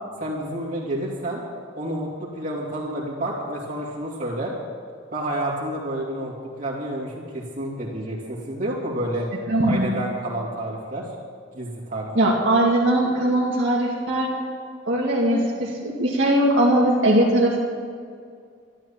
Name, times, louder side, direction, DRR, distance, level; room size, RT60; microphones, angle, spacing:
voice 1, 0.2-1.4 1.8-4.5 5.1-9.3 9.6-11.1 11.5-12.1, right 1 dB, 40° right, -5 dB, 2.8 m, -29 dB
voice 2, 9.5-9.9 12.2-14.4 14.9-17.6, right 1 dB, 65° right, -4 dB, 2.5 m, -20 dB
12.5 x 12.5 x 7.4 m, 2.2 s
head